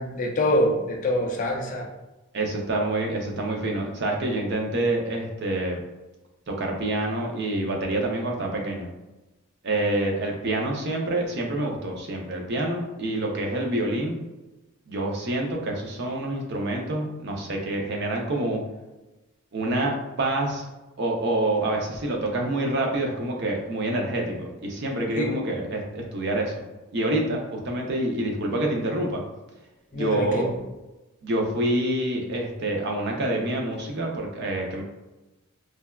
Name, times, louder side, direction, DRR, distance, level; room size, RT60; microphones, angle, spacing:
voice 1, 0.0-1.9 25.2-25.3 29.9-30.4, left 1 dB, 35° left, 1 dB, 0.3 m, -25 dB
voice 2, 2.3-5.8 6.5-8.9 9.6-14.2 14.9-18.6 19.5-19.9 20.2-20.6 21.0-26.6 26.9-29.2 29.9-30.5 31.2-34.8, right 1 dB, 50° right, 0 dB, 0.5 m, -27 dB
3.2 x 2.2 x 2.2 m, 1.0 s
head